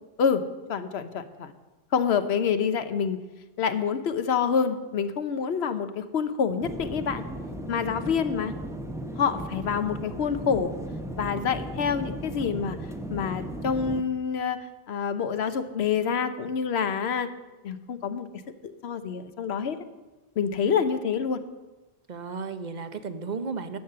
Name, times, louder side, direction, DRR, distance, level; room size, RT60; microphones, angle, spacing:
voice 1, 0.7-1.5 1.9-3.2 3.6-7.2 7.7-8.5 9.2-10.7 11.1-12.8 13.1-17.3 17.6-18.3 18.6-19.8 20.4-21.4, left 6 dB, 90° left, 10 dB, 1.1 m, -27 dB
sound 1, 6.6-14.0, right 1 dB, 5° right, 0.6 m, -36 dB
voice 2, 22.1-23.8, right 5 dB, 50° right, 11 dB, 0.8 m, -34 dB
11.0 x 8.2 x 6.7 m, 1.1 s
omnidirectional pair, 1.0 m